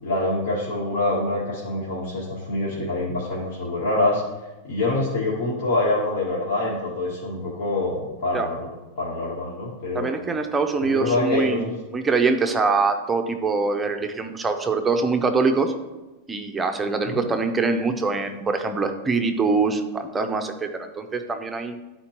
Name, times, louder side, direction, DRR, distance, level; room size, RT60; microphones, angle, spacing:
voice 1, 0.0-4.2 4.7-8.7 9.0-10.1 10.8-11.7 17.1-17.2, left 2 dB, 70° left, -7 dB, 1.9 m, -25 dB
voice 2, 9.9-15.7 16.3-21.8, right 4 dB, 10° right, 5 dB, 0.5 m, -24 dB
11.0 x 4.4 x 2.9 m, 1.1 s
supercardioid pair, 170°, 0 cm